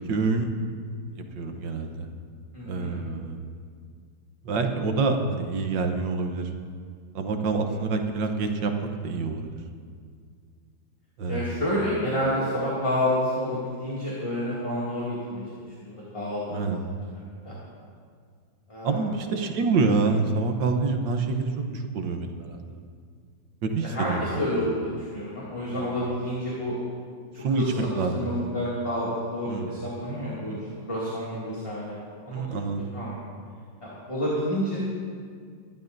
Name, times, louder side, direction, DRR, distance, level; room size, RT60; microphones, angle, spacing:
voice 1, 0.1-0.5 1.1-2.1 2.6-3.4 4.4-6.5 7.1-9.5 11.2-11.5 16.5-16.8 18.8-22.6 23.6-24.4 25.7-25.9 27.4-28.3 29.4-29.7 32.3-32.8, right 4 dB, 70° right, 5 dB, 1.6 m, -27 dB
voice 2, 2.5-3.0 7.7-7.8 11.3-16.7 17.4-17.5 18.7-19.1 23.8-26.7 27.3-27.9 28.1-30.6 30.9-31.9 32.2-32.5 32.9-33.2 33.8-34.8, left 1 dB, 15° left, -8 dB, 2.4 m, -29 dB
23.5 x 12.0 x 2.6 m, 2.1 s
omnidirectional pair, 2.1 m